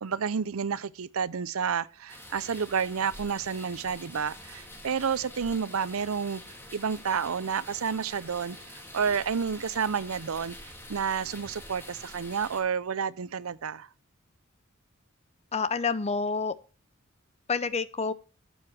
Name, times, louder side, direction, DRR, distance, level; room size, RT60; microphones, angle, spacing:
voice 1, 0.0-6.4 6.7-13.9, right 6 dB, 90° right, 0.6 m, -30 dB
sound 1, 2.1-12.6, left 1 dB, 10° left, 2.2 m, -46 dB
voice 2, 15.5-16.5 17.5-18.1, left 4 dB, 30° left, 0.7 m, -28 dB
12.5 x 8.1 x 4.2 m
head